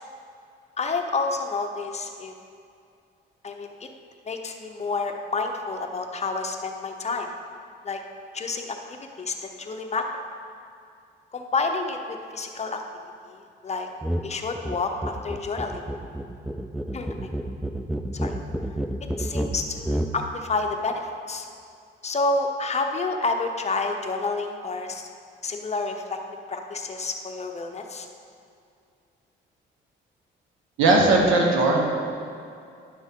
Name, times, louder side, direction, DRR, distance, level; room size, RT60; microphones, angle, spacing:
voice 1, 0.8-2.3 3.4-3.9 4.2-7.3 7.8-8.0 8.3-10.1 11.3-12.8 13.2-13.4 13.6-13.9 14.2-15.9 16.9-17.3 18.1-18.4 19.2-21.5 22.0-25.1 25.4-26.2 26.5-28.1, left 3 dB, 35° left, 4 dB, 0.8 m, -29 dB
sound 1, 14.0-14.3 14.5-20.2, right 1 dB, ahead, 0.4 m, -30 dB
voice 2, 30.8-31.8, right 2 dB, 90° right, 0 dB, 1.4 m, -18 dB
11.0 x 6.1 x 3.8 m, 2.4 s
cardioid pair, 90°, 20 cm